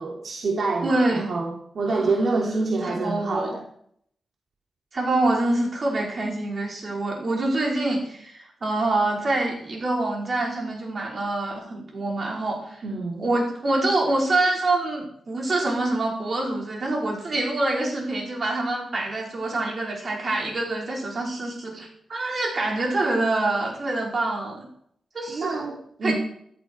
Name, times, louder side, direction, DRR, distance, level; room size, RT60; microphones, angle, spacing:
voice 1, 0.0-3.6 12.8-13.3 25.3-26.1, right 3 dB, 60° right, -1 dB, 3.2 m, -27 dB
voice 2, 0.8-1.3 1.9-2.2 2.8-3.5 4.9-12.8 13.2-24.7 25.1-25.6 26.0-26.1, right 2 dB, 45° right, -1 dB, 5.3 m, -26 dB
15.5 x 13.5 x 4.8 m, 0.67 s
wide cardioid pair, 105°, 0 cm